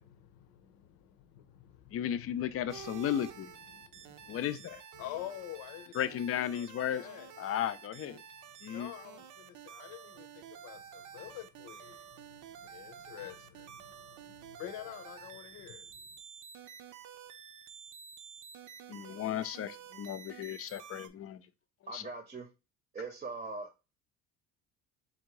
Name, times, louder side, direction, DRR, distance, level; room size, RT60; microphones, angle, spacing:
voice 1, 0.1-4.5 4.9-6.0 6.5-6.7 7.0-7.3 8.6-16.2, left 12 dB, 90° left, 0.8 m, -48 dB
voice 2, 1.9-3.5 4.3-4.8 5.9-7.1 7.4-8.2 8.6-8.9 18.9-21.4 21.9-22.0, left 10 dB, 45° left, 0.5 m, -35 dB
sound 1, 2.7-21.1, right 8 dB, 65° right, 0.6 m, -50 dB
voice 3, 21.9-22.5 22.9-23.7, right 3 dB, 25° right, 0.7 m, -41 dB
3.6 x 2.6 x 4.6 m
cardioid pair, 115°, 33 cm